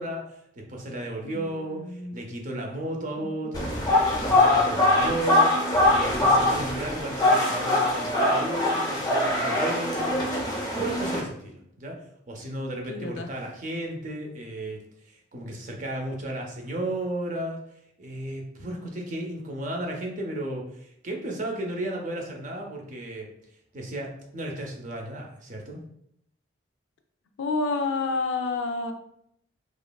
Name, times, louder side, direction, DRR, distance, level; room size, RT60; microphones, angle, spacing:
voice 1, 0.0-1.9 2.1-3.8 4.1-10.5 10.8-17.6 18.0-23.3 23.7-25.8, right 1 dB, 40° right, 1 dB, 0.5 m, -34 dB
voice 2, 1.2-2.2 3.2-3.3 12.9-13.3 27.4-28.9, left 3 dB, 80° left, 6 dB, 0.4 m, -29 dB
sound 1, 3.5-11.2, left 1 dB, 20° left, 0.5 m, -23 dB
2.9 x 2.4 x 2.2 m, 0.73 s
head